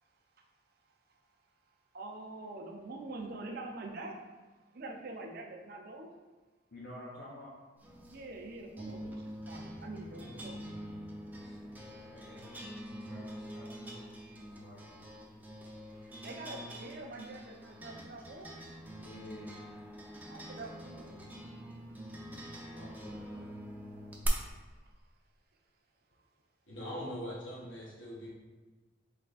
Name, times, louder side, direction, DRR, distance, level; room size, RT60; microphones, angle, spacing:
voice 1, 1.9-4.2 4.7-6.1 8.1-10.6 13.8-14.1 14.5-14.6 15.7-18.5 20.3-21.2, right 2 dB, 55° right, 2 dB, 0.6 m, -45 dB
voice 2, 6.7-7.5 11.2-15.0 19.0-19.6 22.2-23.4, left 1 dB, 55° left, -5 dB, 0.6 m, -52 dB
sound 1, 7.8-24.3, equal, 10° right, 0.5 m, -46 dB
voice 3, 26.7-28.3, equal, 85° left, -4 dB, 1.2 m, -41 dB
3.3 x 3.2 x 4.0 m, 1.3 s
head